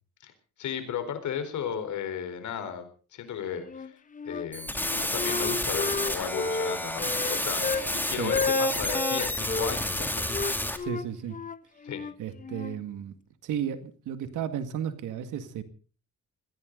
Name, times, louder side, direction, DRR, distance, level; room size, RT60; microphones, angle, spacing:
voice 1, 0.6-4.0 4.2-10.4 11.8-12.0, left 8 dB, 75° left, 9 dB, 4.1 m, -35 dB
Wind instrument woodwind instrument, 3.6-4.5 4.8-7.9 8.2-9.7 10.3-12.8, left 4 dB, 25° left, 0.8 m, -31 dB
sound 1, 4.5-10.8, left 1 dB, 5° left, 2.5 m, -30 dB
voice 2, 10.8-11.4 12.2-13.1 13.4-15.6, right 9 dB, 85° right, 10 dB, 2.0 m, -33 dB
21.5 x 16.5 x 3.9 m, 0.37 s
cardioid pair, 90°, 30 cm